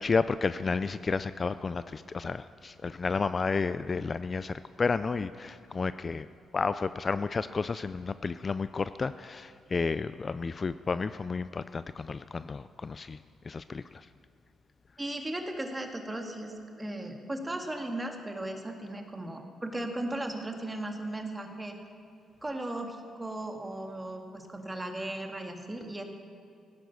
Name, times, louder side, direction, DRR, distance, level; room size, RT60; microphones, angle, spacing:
voice 1, 0.0-6.3 6.5-13.2 13.4-14.1, left 4 dB, 35° left, 14 dB, 0.3 m, -31 dB
voice 2, 15.0-21.8 22.4-26.0, right 1 dB, 15° right, 4 dB, 1.8 m, -36 dB
16.0 x 10.5 x 6.9 m, 2.4 s
cardioid pair, 75°, 0 cm